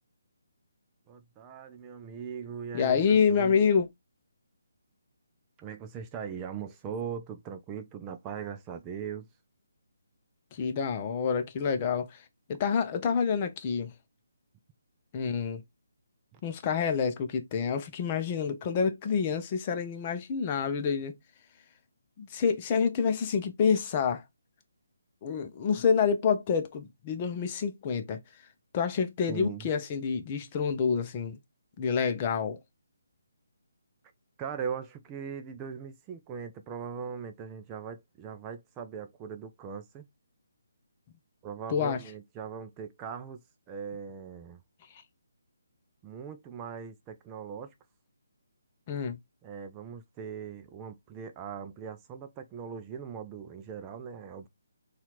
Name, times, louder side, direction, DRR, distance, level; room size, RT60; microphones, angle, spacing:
voice 1, 1.1-3.6 5.6-9.3 16.3-16.4 29.3-29.7 34.4-40.1 41.4-43.4 43.7-44.6 46.0-47.7 49.4-54.5, right 7 dB, 20° right, 0.4 m, -40 dB
voice 2, 2.7-3.9 10.5-12.2 12.5-13.9 15.1-15.6 16.4-21.1 22.2-24.2 25.2-28.2 28.7-31.4 31.8-32.6 41.7-42.0 48.9-49.2, left 6 dB, 30° left, 0.6 m, -27 dB
4.2 x 2.4 x 2.9 m
figure-of-eight pair, 150°, 0 cm